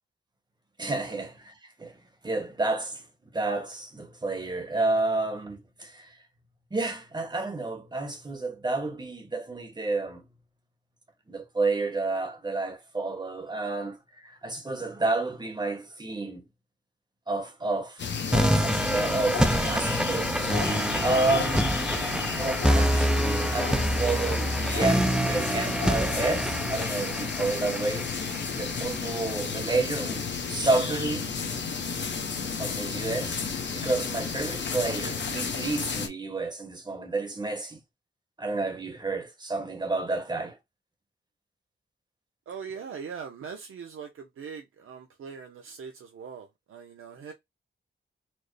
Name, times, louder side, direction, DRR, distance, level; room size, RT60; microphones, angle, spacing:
voice 1, 0.8-1.5 1.8-2.0 2.2-3.0 3.3-6.2 6.7-10.3 11.3-16.5 17.3-18.0 18.5-20.5 21.0-21.9 22.4-28.1 28.6-31.3 32.6-33.4 33.7-37.8 38.4-40.6, right 3 dB, 20° right, 1.0 m, -30 dB
sound 1, 18.0-36.1, left 5 dB, 60° left, 0.8 m, -32 dB
sound 2, 18.3-29.3, right 1 dB, 5° right, 0.3 m, -27 dB
voice 2, 42.5-47.3, right 6 dB, 90° right, 0.6 m, -41 dB
4.3 x 2.0 x 3.1 m
wide cardioid pair, 115°, 21 cm